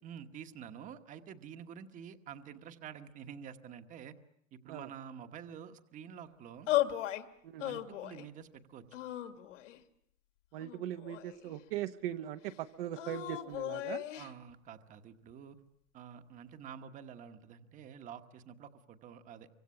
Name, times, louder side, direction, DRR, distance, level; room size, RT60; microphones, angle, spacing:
voice 1, 0.0-4.2 4.5-6.7 7.6-8.8 14.2-15.6 15.9-19.5, right 8 dB, 20° right, 9 dB, 1.2 m, -48 dB
sound 1, 6.7-7.2 7.6-8.3 8.9-9.8 10.6-11.6 12.9-14.3, left 14 dB, 70° left, 2.3 m, -36 dB
voice 2, 10.5-14.0, right 12 dB, 45° right, 7 dB, 1.0 m, -40 dB
25.0 x 25.0 x 8.4 m, 0.72 s
supercardioid pair, 160°, 38 cm